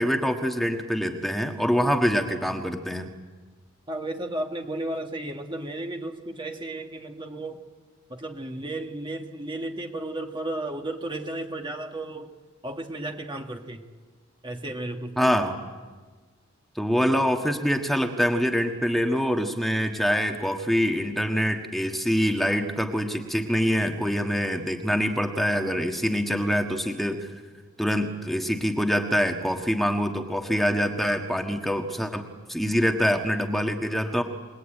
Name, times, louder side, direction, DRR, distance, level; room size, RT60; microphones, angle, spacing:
voice 1, 0.0-3.1 15.2-15.6 16.7-27.3 27.8-32.2 32.5-34.2, equal, ahead, 4 dB, 1.5 m, -25 dB
voice 2, 3.9-7.6 8.1-12.3 12.6-13.8 14.4-15.3, right 1 dB, 20° right, 3 dB, 1.5 m, -34 dB
29.0 x 19.5 x 9.0 m, 1.4 s
head